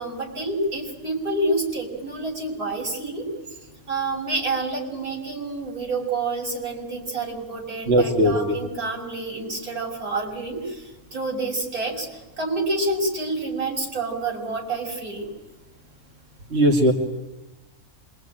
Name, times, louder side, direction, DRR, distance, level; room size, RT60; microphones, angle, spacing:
voice 1, 0.0-3.3 3.9-15.3, right 2 dB, 80° right, -1 dB, 6.7 m, -28 dB
voice 2, 7.9-8.6 16.5-16.9, equal, 45° right, 0 dB, 2.5 m, -19 dB
26.5 x 23.0 x 9.1 m, 1.1 s
omnidirectional pair, 1.5 m